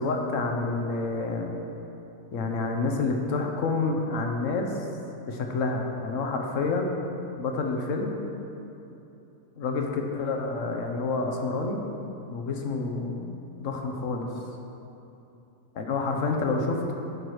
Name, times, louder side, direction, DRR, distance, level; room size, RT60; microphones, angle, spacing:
voice 1, 0.0-1.6 2.3-4.7 5.3-7.0 7.4-8.1 9.6-11.8 12.3-13.3 13.6-14.3 15.7-16.9, left 3 dB, 60° left, 2 dB, 1.1 m, -28 dB
11.5 x 4.6 x 4.8 m, 2.9 s
omnidirectional pair, 1.6 m